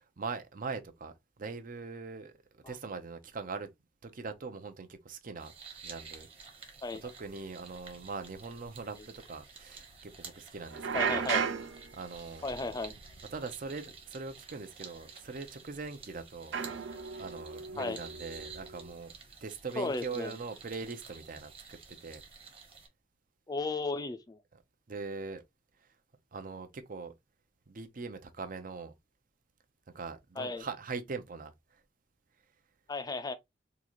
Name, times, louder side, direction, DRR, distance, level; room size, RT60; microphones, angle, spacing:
voice 1, 0.2-1.1 1.4-2.3 2.7-3.7 4.0-5.5 5.8-6.3 7.0-11.2 11.9-12.8 13.3-16.6 17.2-19.1 19.4-22.2 24.9-25.4 26.3-27.1 27.7-28.9 29.9-31.5, right 4 dB, 45° right, 0.6 m, -41 dB
sound 1, 5.4-22.9, right 5 dB, 30° right, 1.1 m, -51 dB
sound 2, 8.8-8.9 10.7-13.7 14.0-14.3 15.2-15.3 16.5-18.9, right 6 dB, 85° right, 0.7 m, -36 dB
voice 2, 10.9-11.5 12.4-12.9 17.8-18.0 19.8-20.3 23.5-24.4 30.4-30.6 32.9-33.3, left 3 dB, 20° left, 0.4 m, -35 dB
3.8 x 2.4 x 2.9 m
head